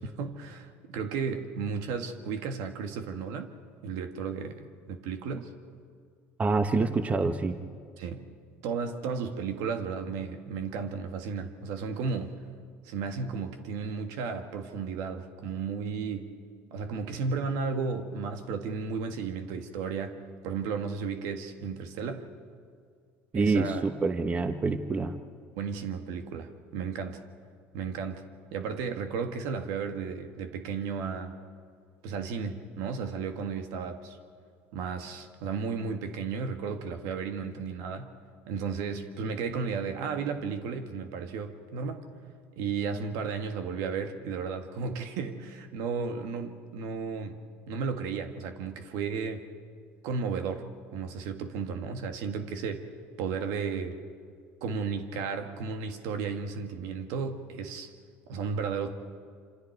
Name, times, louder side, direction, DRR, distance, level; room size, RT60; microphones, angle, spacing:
voice 1, 0.0-3.5 3.8-5.5 8.0-8.3 8.6-12.4 12.8-16.3 16.7-22.3 23.3-23.9 25.6-27.2 27.7-28.3 28.5-31.3 32.0-34.2 34.7-38.1 38.5-42.0 42.6-47.4 47.7-49.4 50.0-52.9 53.2-54.0 54.6-57.9 58.3-58.9, right 5 dB, 75° right, 6 dB, 1.9 m, -34 dB
voice 2, 6.4-7.6 23.3-25.2, right 3 dB, 25° right, 8 dB, 1.2 m, -27 dB
27.0 x 26.5 x 4.7 m, 2.1 s
supercardioid pair, 100°, 6 cm